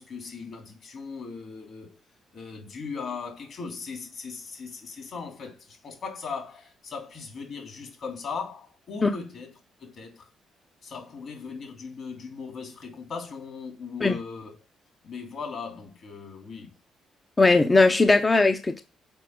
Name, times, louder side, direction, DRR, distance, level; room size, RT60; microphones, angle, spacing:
voice 1, 0.0-2.0 2.3-9.5 9.8-10.3 10.8-14.6 15.0-16.7, left 5 dB, 55° left, 3.1 m, -38 dB
voice 2, 17.4-18.8, left 3 dB, 25° left, 0.7 m, -19 dB
6.2 x 5.1 x 6.0 m
cardioid pair, 90°, 0 cm